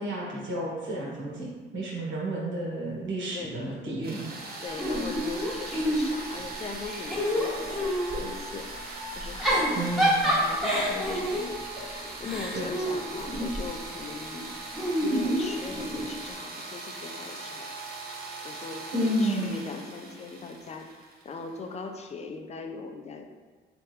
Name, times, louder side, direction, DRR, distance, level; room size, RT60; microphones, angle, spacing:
voice 1, 0.0-4.6 9.7-10.2 12.5-12.7 18.9-19.6, right 1 dB, 75° right, -5 dB, 1.2 m, -31 dB
sound 1, 4.0-21.7, right 2 dB, 50° right, 0.7 m, -40 dB
voice 2, 4.6-10.0 10.2-17.7 18.4-23.3, left 4 dB, 35° left, 4 dB, 0.4 m, -40 dB
Giggle / Chuckle chortle, 4.8-6.4 6.8-8.2 9.2-13.7 14.7-16.1, equal, ahead, 1.0 m, -28 dB
3.3 x 2.9 x 3.2 m, 1.3 s
cardioid pair, 90°, 20 cm